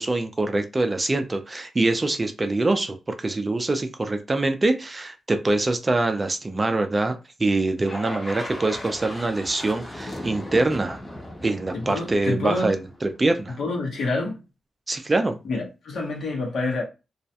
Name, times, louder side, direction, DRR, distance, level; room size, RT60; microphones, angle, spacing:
voice 1, 0.0-11.0 11.4-13.6 14.9-15.4, right 2 dB, 25° right, 0.4 m, -24 dB
sound 1, 7.8-13.1, left 1 dB, 20° left, 0.6 m, -37 dB
voice 2, 11.7-12.8 13.6-14.4 15.4-16.8, left 2 dB, 80° left, 0.9 m, -27 dB
2.3 x 2.1 x 2.7 m
wide cardioid pair, 105°, 0 cm